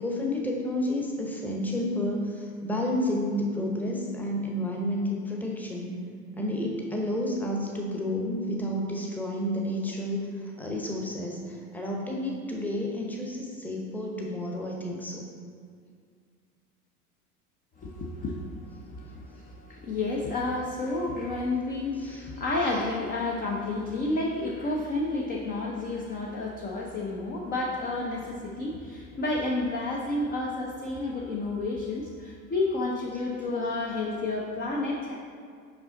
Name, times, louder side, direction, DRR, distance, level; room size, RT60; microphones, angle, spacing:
voice 1, 0.0-6.0 6.4-15.2 22.0-22.3, left 1 dB, 5° left, -1 dB, 0.9 m, -30 dB
voice 2, 17.8-35.2, left 2 dB, 20° left, -2 dB, 0.6 m, -31 dB
5.6 x 5.4 x 3.8 m, 2.1 s
figure-of-eight pair, 85°, 46 cm